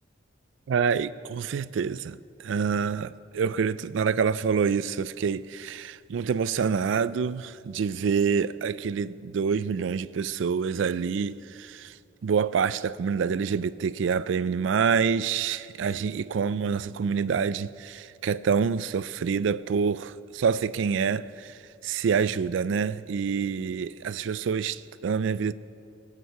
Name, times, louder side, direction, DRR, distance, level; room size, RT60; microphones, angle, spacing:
voice 1, 0.7-11.9 12.2-25.5, right 6 dB, 75° right, 0.3 m, -27 dB
18.0 x 8.3 x 5.6 m
head